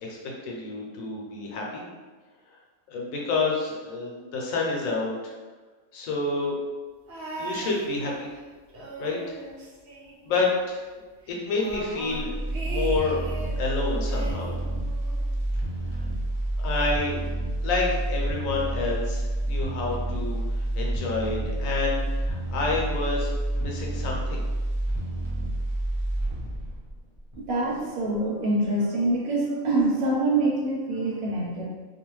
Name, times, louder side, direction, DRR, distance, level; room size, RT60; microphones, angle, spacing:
voice 1, 0.0-1.9 2.9-5.3 5.9-6.6 7.3-8.3 9.0-9.2 10.2-10.8 11.3-12.3 12.6-13.2 13.6-14.5 16.6-17.2 17.6-20.4 20.8-24.4, left 3 dB, 75° left, -2 dB, 1.0 m, -29 dB
sound 1, 7.1-8.4 8.7-10.6 10.9-11.0 11.3-13.7 14.1-15.3 16.2-16.3, right 3 dB, 60° right, 0.8 m, -38 dB
sound 2, 11.7-27.8 28.1-28.2, right 1 dB, 25° right, 0.7 m, -29 dB
voice 2, 27.4-31.6, right 2 dB, 75° right, -3 dB, 1.1 m, -25 dB
2.5 x 2.3 x 3.0 m, 1.4 s
omnidirectional pair, 1.5 m